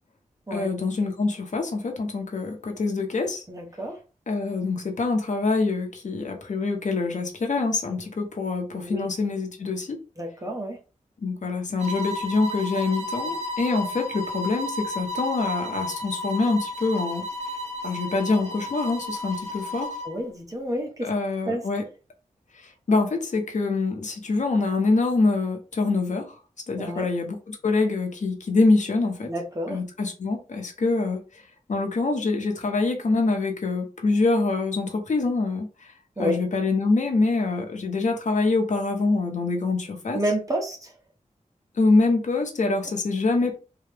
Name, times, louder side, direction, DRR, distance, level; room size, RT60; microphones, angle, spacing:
voice 1, 0.5-3.4 4.3-10.0 11.2-17.2 17.8-19.9 21.0-21.8 22.5-26.3 26.7-29.3 29.7-31.2 31.7-35.7 36.2-40.2 41.8-43.6, left 3 dB, 70° left, 0.9 m, -25 dB
voice 2, 3.5-4.0 8.8-9.1 10.2-10.8 20.0-21.1 21.5-21.6 26.8-27.1 29.2-29.8 36.2-36.3 40.1-40.9, equal, 25° right, 1.2 m, -29 dB
sound 1, 11.8-20.2, left 1 dB, 55° right, 0.9 m, -33 dB
3.8 x 2.3 x 3.4 m
wide cardioid pair, 80°, 13 cm